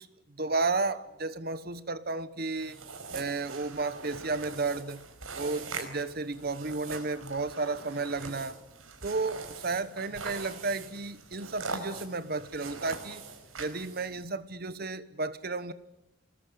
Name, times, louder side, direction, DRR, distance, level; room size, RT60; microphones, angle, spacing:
voice 1, 0.0-2.8 3.1-5.0 5.3-8.6 9.0-13.2 13.6-15.7, right 3 dB, 50° right, 1.1 m, -33 dB
sound 1, 2.6-14.2, right 4 dB, 90° right, 4.9 m, -42 dB
27.5 x 20.5 x 9.5 m
head